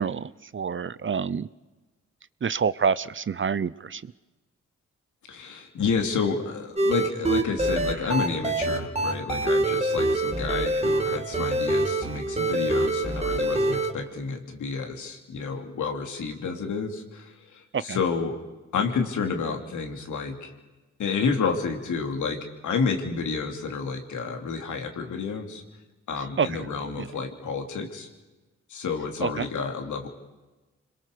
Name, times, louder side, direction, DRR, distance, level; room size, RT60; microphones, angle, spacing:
voice 1, 0.0-1.5 2.4-4.0 17.7-18.0 26.4-26.5 27.0-27.1 29.2-29.5, right 6 dB, 40° right, 18 dB, 0.8 m, -27 dB
voice 2, 5.3-18.4 18.7-20.5 21.0-25.6 26.1-28.1 28.7-30.1, left 5 dB, 80° left, 4 dB, 3.1 m, -30 dB
sound 1, 6.8-13.9, right 2 dB, 20° right, 2.5 m, -25 dB
26.5 x 21.5 x 6.8 m, 1.2 s
cardioid pair, 60°, 30 cm